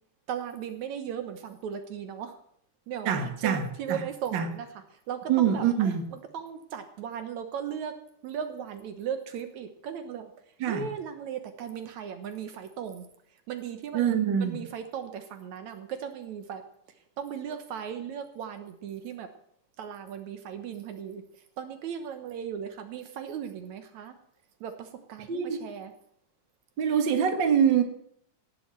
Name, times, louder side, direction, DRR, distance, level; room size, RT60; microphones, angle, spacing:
voice 1, 0.3-2.4 2.9-7.9 8.2-10.3 10.7-13.1 13.5-16.6 17.2-19.3 19.8-21.2 21.6-24.2 24.6-25.9, right 8 dB, 75° right, 8 dB, 2.3 m, -37 dB
voice 2, 3.1-3.6 3.9-4.0 4.3-4.5 5.3-6.0 10.6-10.8 13.9-14.6 25.3-25.6 26.8-27.8, right 8 dB, 45° right, 6 dB, 2.0 m, -24 dB
18.0 x 7.8 x 7.5 m, 0.71 s
omnidirectional pair, 3.4 m